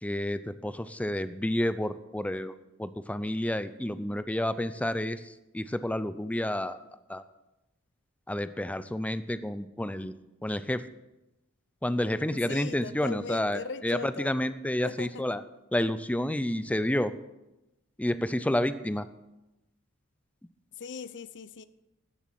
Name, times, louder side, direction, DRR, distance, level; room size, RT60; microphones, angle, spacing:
voice 1, 0.0-2.5 2.8-6.8 7.1-7.2 8.3-10.1 10.4-10.8 11.8-15.4 15.7-17.1 18.0-19.1, left 1 dB, 5° left, 13 dB, 0.5 m, -30 dB
voice 2, 12.3-14.3 14.8-15.2 20.8-21.7, left 5 dB, 55° left, 15 dB, 0.6 m, -39 dB
13.5 x 7.2 x 7.6 m, 0.95 s
head